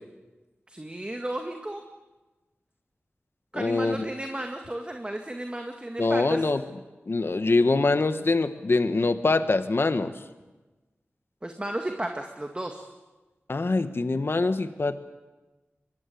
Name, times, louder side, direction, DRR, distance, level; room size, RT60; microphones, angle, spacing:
voice 1, 0.7-1.8 3.5-6.5 11.4-12.9, right 1 dB, 25° right, 4 dB, 2.0 m, -33 dB
voice 2, 3.5-4.0 6.0-6.6 7.1-10.1 13.5-15.0, left 3 dB, 60° left, 10 dB, 1.4 m, -24 dB
23.0 x 23.0 x 8.5 m, 1.2 s
wide cardioid pair, 75°, 4 cm